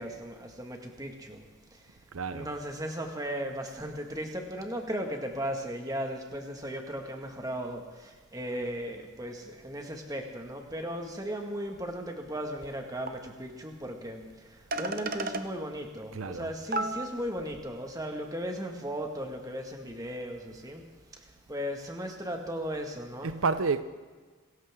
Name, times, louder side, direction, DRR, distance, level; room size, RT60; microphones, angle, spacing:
voice 1, 0.0-1.4 1.7-1.9 2.3-20.8 21.1-23.3, equal, 15° right, 1.8 m, -36 dB
voice 2, 2.1-2.5 16.1-16.5 23.2-23.8, right 4 dB, 85° right, 0.7 m, -30 dB
sound 1, 12.6-12.7 13.1-13.2 14.3-14.4 14.7-15.4 16.3-16.4 16.7-17.4, right 2 dB, 45° right, 0.8 m, -32 dB
27.0 x 14.0 x 3.7 m
head